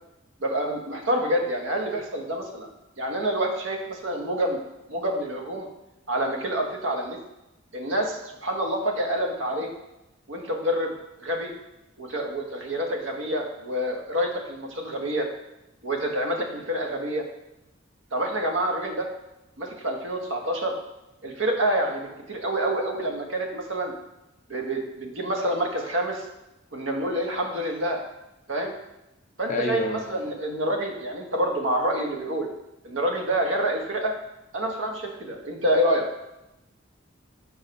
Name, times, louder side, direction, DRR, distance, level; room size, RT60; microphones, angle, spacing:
voice 1, 0.4-2.7 3.0-4.6 4.9-5.7 6.1-7.2 7.7-9.7 10.3-10.9 11.2-11.5 12.0-15.3 15.8-17.2 18.1-19.1 19.6-20.7 21.2-23.9 24.5-26.2 26.7-28.0 28.5-28.7 29.4-32.5 32.8-34.1 34.5-36.1, right 1 dB, 75° right, 2 dB, 1.3 m, -27 dB
voice 2, 29.5-30.1, left 2 dB, 40° left, 4 dB, 0.7 m, -29 dB
6.7 x 4.9 x 5.3 m, 0.93 s
head